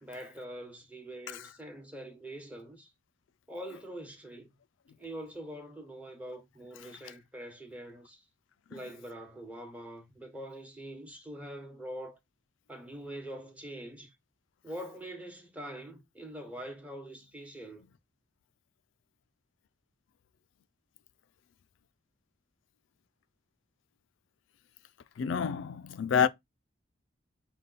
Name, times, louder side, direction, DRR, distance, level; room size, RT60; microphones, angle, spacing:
voice 1, 0.0-2.9 3.5-4.5 5.0-8.2 8.7-12.2 12.7-14.1 14.6-17.9, right 1 dB, 10° right, 0.9 m, -44 dB
voice 2, 25.2-26.3, left 7 dB, 85° left, 0.4 m, -28 dB
5.3 x 2.2 x 3.8 m
head